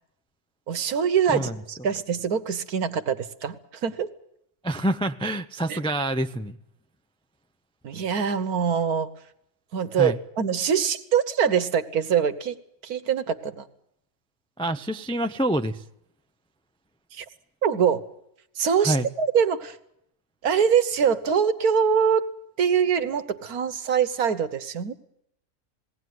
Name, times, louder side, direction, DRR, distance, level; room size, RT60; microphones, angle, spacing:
voice 1, 0.7-4.1 5.7-5.8 7.8-9.1 9.7-12.5 12.8-13.7 17.2-17.3 17.6-18.0 18.6-19.7 20.4-22.3 22.6-24.9, right 7 dB, 75° right, 11 dB, 1.6 m, -24 dB
voice 2, 4.6-6.6 10.0-10.2 14.6-15.8 18.8-19.1, right 1 dB, 10° left, 8 dB, 0.3 m, -26 dB
20.5 x 17.5 x 9.4 m, 0.78 s
omnidirectional pair, 1.6 m